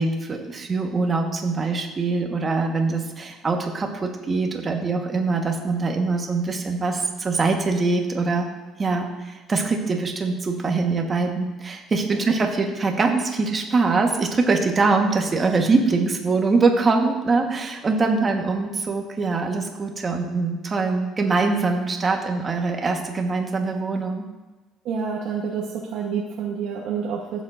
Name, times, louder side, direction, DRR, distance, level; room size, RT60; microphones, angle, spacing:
voice 1, 0.0-8.5 8.8-24.3, right 3 dB, 25° right, 3 dB, 1.3 m, -23 dB
voice 2, 24.8-27.4, right 6 dB, 65° right, -2 dB, 1.1 m, -28 dB
15.0 x 7.3 x 2.6 m, 1.2 s
cardioid pair, 125°, 0 cm